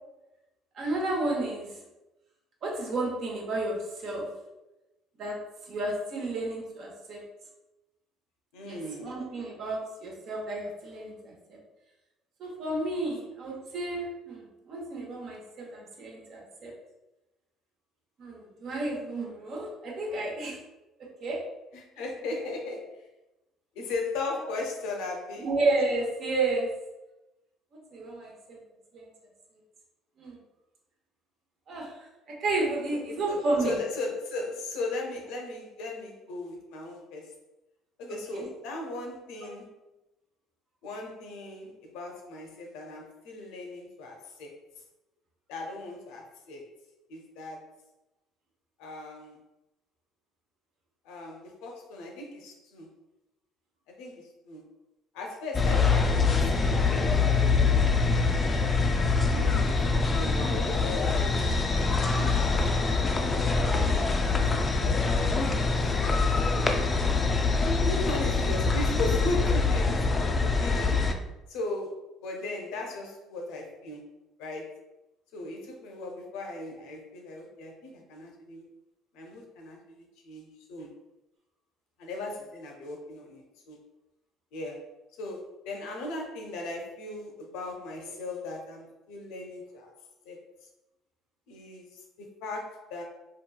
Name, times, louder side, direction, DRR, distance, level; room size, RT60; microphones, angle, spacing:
voice 1, 0.7-1.8 2.6-4.3 5.2-7.2 8.7-11.6 12.4-16.7 18.2-20.6 21.2-21.4 22.4-22.5 24.3-24.4 25.4-26.7 27.7-28.6 28.9-29.1 30.2-30.4 31.7-33.8 38.1-38.5 39.4-39.5 59.9-60.1, right 2 dB, 60° right, -1 dB, 0.8 m, -32 dB
voice 2, 8.5-9.1 21.7-23.1 23.7-25.5 33.3-37.3 38.0-39.7 40.8-44.5 45.5-46.6 47.1-47.7 48.8-49.4 51.0-52.9 53.9-54.6 55.1-58.0 59.3-62.6 62.9-65.8 66.5-71.1 71.5-74.0 74.4-74.8 75.3-78.7 79.1-80.9 82.0-83.8 84.5-84.9 85.2-89.9 90.2-90.4 91.5-93.0, left 2 dB, 80° left, 1 dB, 0.6 m, -38 dB
sound 1, 55.5-71.1, left 4 dB, 30° left, 0.3 m, -24 dB
2.9 x 2.2 x 2.2 m, 0.99 s
supercardioid pair, 75°, 0 cm